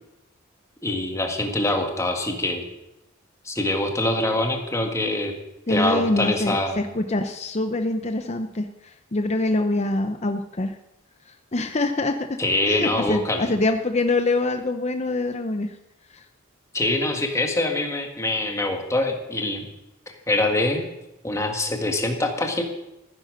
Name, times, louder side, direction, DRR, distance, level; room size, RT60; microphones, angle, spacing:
voice 1, 0.8-2.6 3.4-5.3 5.7-6.7 12.4-13.5 16.7-19.7 20.3-20.8 21.2-22.6, left 2 dB, 15° left, 3 dB, 1.7 m, -24 dB
voice 2, 5.7-8.7 9.1-10.8 11.5-12.2 12.7-15.7 16.1-16.2, left 2 dB, 30° left, 7 dB, 0.7 m, -24 dB
15.0 x 10.0 x 6.4 m, 0.96 s
head